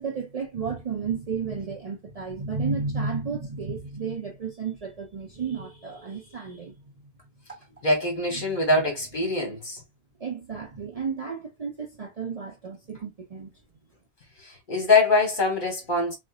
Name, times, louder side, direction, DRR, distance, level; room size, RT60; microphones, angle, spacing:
voice 1, 0.0-6.8 8.3-8.6 10.2-13.5, right 5 dB, 45° right, 0.6 m, -32 dB
voice 2, 7.8-9.8 14.4-16.2, left 2 dB, 50° left, 1.6 m, -23 dB
4.0 x 2.2 x 2.3 m
omnidirectional pair, 1.1 m